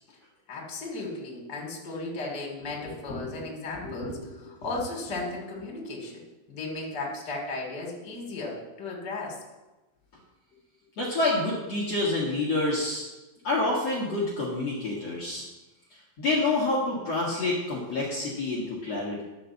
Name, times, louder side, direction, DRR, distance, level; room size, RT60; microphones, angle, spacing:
voice 1, 0.5-6.2 6.5-9.4, left 2 dB, 30° left, -1 dB, 2.1 m, -35 dB
voice 2, 11.0-13.0 13.4-15.4 16.2-19.2, left 2 dB, 65° left, -5 dB, 1.6 m, -27 dB
12.0 x 5.3 x 7.2 m, 1.1 s
omnidirectional pair, 5.7 m